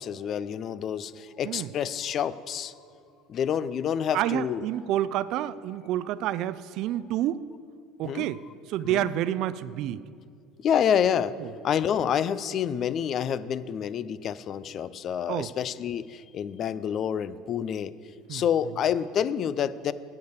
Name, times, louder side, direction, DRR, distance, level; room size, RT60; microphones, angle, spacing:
voice 1, 0.0-2.7 3.3-4.7 8.0-8.3 8.8-9.2 10.6-11.4 11.6-17.9 18.3-19.9, left 8 dB, 45° left, 17 dB, 0.4 m, -28 dB
voice 2, 4.1-7.4 8.0-8.4 8.7-10.0 11.4-11.5 15.3-15.5 18.3-18.4, right 13 dB, 60° right, 17 dB, 0.3 m, -29 dB
8.2 x 6.8 x 7.9 m, 2.3 s
supercardioid pair, 110°, 0 cm